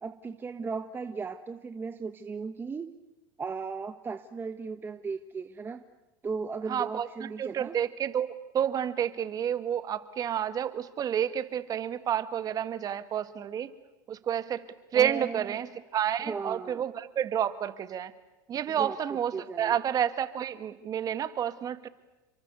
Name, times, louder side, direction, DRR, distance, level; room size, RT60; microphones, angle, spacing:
voice 1, 0.0-2.9 3.4-5.8 6.2-7.8 14.9-15.6 16.2-16.8 18.8-19.0 19.3-19.8, right 5 dB, 20° right, 8 dB, 1.3 m, -36 dB
voice 2, 6.7-13.7 14.1-14.6 14.9-18.1 18.5-21.9, right 9 dB, 35° right, 12 dB, 1.8 m, -30 dB
30.0 x 23.5 x 8.2 m, 1.0 s
supercardioid pair, 110°, 11 cm